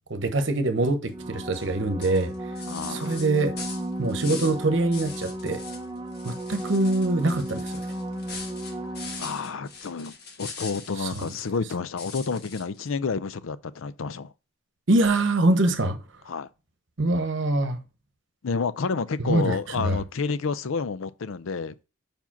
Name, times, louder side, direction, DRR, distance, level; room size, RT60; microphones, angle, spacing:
voice 1, 0.1-2.3 2.9-3.5 4.0-5.6 6.2-7.7 11.0-11.3 14.9-16.0 17.0-17.8 19.2-20.0, right 2 dB, 65° right, 1.0 m, -24 dB
sound 1, 1.1-9.7 15.1-15.2, right 1 dB, 20° right, 0.6 m, -35 dB
sound 2, 1.5-1.7 2.0-4.6 4.9-5.8 6.1-11.6 12.0-12.9, left 5 dB, 50° left, 1.5 m, -41 dB
voice 2, 2.7-3.3 9.2-10.1 10.4-14.3 16.3-16.5 18.4-21.7, left 5 dB, 75° left, 0.5 m, -30 dB
5.3 x 4.9 x 5.9 m
head